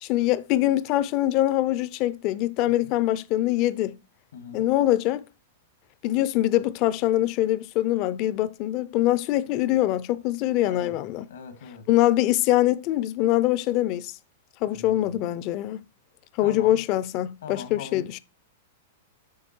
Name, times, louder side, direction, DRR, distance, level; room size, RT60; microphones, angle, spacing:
voice 1, 0.0-3.9 4.5-5.2 6.0-11.3 11.9-14.1 14.6-15.8 16.4-18.2, left 14 dB, 40° left, 0.5 m, -23 dB
voice 2, 4.3-4.6 10.6-11.0 11.3-11.9 14.7-15.2 16.4-16.7 17.4-18.2, left 6 dB, 85° left, 2.1 m, -40 dB
8.6 x 5.1 x 4.4 m
hypercardioid pair, 150°, 0 cm